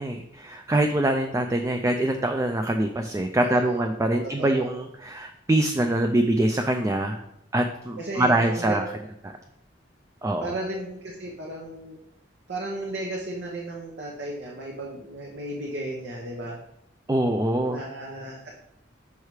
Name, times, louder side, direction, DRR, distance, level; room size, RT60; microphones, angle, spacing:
voice 1, 0.0-7.2 7.5-8.8 9.2-9.4 10.2-10.5 17.1-17.8, right 1 dB, 15° right, 5 dB, 0.3 m, -24 dB
voice 2, 3.4-3.8 4.2-4.7 8.0-8.8 10.4-12.0 12.5-16.6 17.6-18.5, right 2 dB, 65° right, -2 dB, 0.9 m, -34 dB
5.5 x 4.8 x 4.8 m, 0.80 s
head